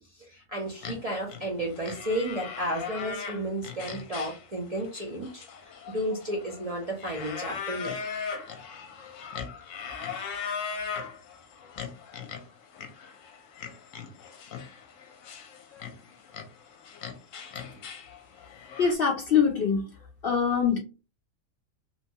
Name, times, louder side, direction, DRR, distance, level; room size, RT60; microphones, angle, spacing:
voice 1, 0.0-7.9, right 1 dB, 45° right, 0.5 m, -33 dB
sound 1, 0.7-18.9, left 6 dB, 75° left, 1.0 m, -39 dB
voice 2, 18.8-19.9 20.2-20.8, left 6 dB, 60° left, 0.6 m, -23 dB
2.9 x 2.2 x 2.7 m
omnidirectional pair, 1.4 m